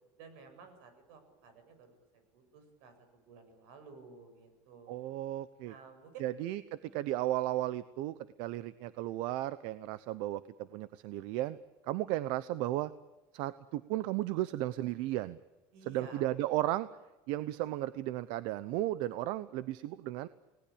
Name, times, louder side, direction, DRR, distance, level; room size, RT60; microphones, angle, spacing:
voice 1, 0.2-2.0 2.3-5.0 5.7-6.3 6.9-7.1 15.7-16.3, right 5 dB, 85° right, 8 dB, 7.8 m, -53 dB
voice 2, 4.9-5.7 6.2-11.6 11.9-12.9 13.3-15.4 15.9-16.9 17.3-20.3, right 15 dB, 65° right, 15 dB, 0.9 m, -34 dB
29.5 x 19.0 x 8.7 m, 1.1 s
cardioid pair, 175°, 8 cm